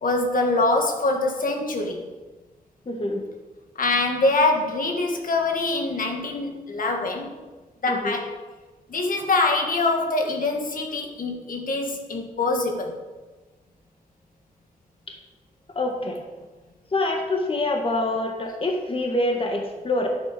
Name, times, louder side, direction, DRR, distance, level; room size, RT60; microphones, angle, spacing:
voice 1, 0.0-2.1 3.8-7.4 7.8-8.4 8.9-13.0, left 2 dB, 65° left, 2 dB, 1.8 m, -24 dB
voice 2, 2.8-3.2 7.9-8.2 15.7-16.2 16.9-20.1, left 2 dB, 35° left, 2 dB, 1.6 m, -25 dB
9.8 x 8.6 x 6.2 m, 1.3 s
cardioid pair, 80°, 15 cm